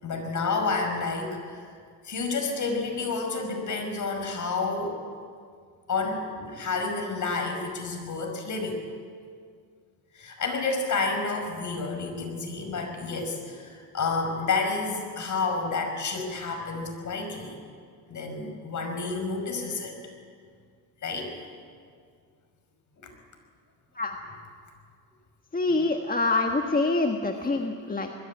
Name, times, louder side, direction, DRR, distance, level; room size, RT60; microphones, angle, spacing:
voice 1, 0.0-1.7 2.0-5.0 5.9-8.8 10.1-17.5 18.1-19.9 21.0-21.3 23.0-23.1, left 4 dB, 45° left, 4 dB, 5.6 m, -30 dB
voice 2, 25.5-28.1, left 3 dB, 20° left, 4 dB, 1.5 m, -25 dB
21.0 x 13.5 x 9.9 m, 2.1 s
supercardioid pair, 75°, 42 cm